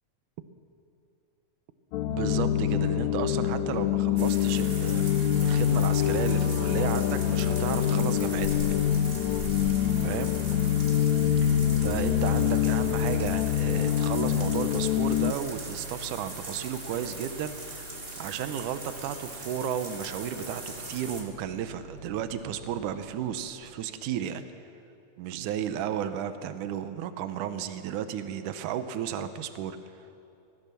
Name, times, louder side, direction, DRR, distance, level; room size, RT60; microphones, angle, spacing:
sound 1, 1.9-15.3, left 10 dB, 75° left, 1.8 m, -25 dB
voice 1, 2.1-5.1 5.4-8.6 10.0-10.3 11.4-17.9 18.2-24.4 25.2-29.8, right 9 dB, 80° right, 10 dB, 2.3 m, -33 dB
sound 2, 4.2-21.2, right 2 dB, 20° right, 2.1 m, -41 dB
Microwave oven, 5.4-23.7, equal, 40° left, 3.3 m, -47 dB
23.0 x 16.5 x 6.8 m, 2.7 s
omnidirectional pair, 3.6 m